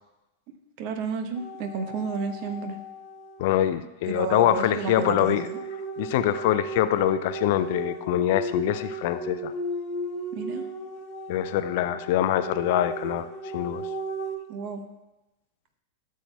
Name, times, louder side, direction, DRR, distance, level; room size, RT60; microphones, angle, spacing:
voice 1, 0.8-2.8 4.1-5.6 10.3-10.6 14.5-14.8, right 5 dB, 45° right, 6 dB, 0.8 m, -31 dB
sound 1, 1.4-3.7 4.9-14.4, right 2 dB, 35° left, 1.0 m, -36 dB
voice 2, 3.4-5.5 6.0-9.5 11.3-13.3 13.5-13.9, left 12 dB, 50° left, 13 dB, 0.4 m, -24 dB
13.5 x 7.4 x 2.2 m, 0.98 s
figure-of-eight pair, 90°, 0 cm